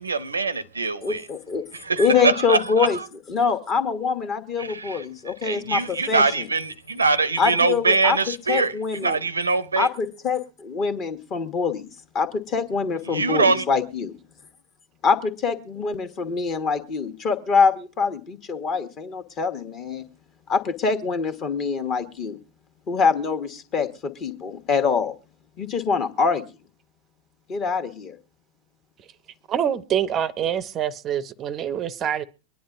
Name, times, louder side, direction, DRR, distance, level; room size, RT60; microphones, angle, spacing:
voice 1, 0.0-1.3 1.7-3.0 4.6-9.9 13.1-13.6, right 4 dB, 75° right, 0.6 m, -23 dB
voice 2, 1.0-1.6 2.0-3.0 3.3-6.5 7.4-8.2 8.5-9.2 9.8-14.1 15.0-20.0 20.5-22.4 22.9-25.1 25.6-26.4 27.5-28.2, left 5 dB, 35° left, 1.2 m, -24 dB
voice 3, 29.5-32.2, right 9 dB, 30° right, 0.6 m, -25 dB
23.5 x 10.0 x 2.5 m
figure-of-eight pair, 90°, 0 cm